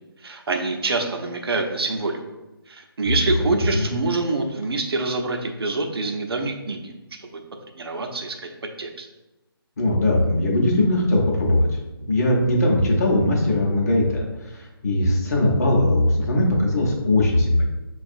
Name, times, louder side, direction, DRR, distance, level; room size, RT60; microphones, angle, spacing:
voice 1, 0.2-2.2 2.7-6.9 7.2-7.4 7.8-8.4 8.8-9.1, right 3 dB, 75° right, 4 dB, 0.7 m, -26 dB
voice 2, 3.4-3.9 9.8-11.6 12.1-17.7, left 1 dB, 40° left, -1 dB, 0.8 m, -20 dB
5.6 x 2.3 x 2.6 m, 1.0 s
hypercardioid pair, 170°, 13 cm